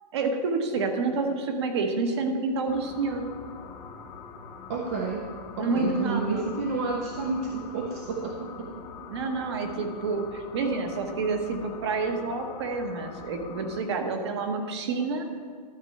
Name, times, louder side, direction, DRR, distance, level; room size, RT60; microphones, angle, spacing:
voice 1, 0.1-3.2 5.6-6.5 9.1-15.3, right 3 dB, 40° right, 5 dB, 1.1 m, -28 dB
sound 1, 2.7-13.8, left 5 dB, 15° left, 0.7 m, -44 dB
voice 2, 4.7-5.3 5.6-8.7, right 4 dB, 20° right, 1 dB, 0.5 m, -30 dB
12.5 x 4.4 x 7.7 m, 2.1 s
hypercardioid pair, 180°, 21 cm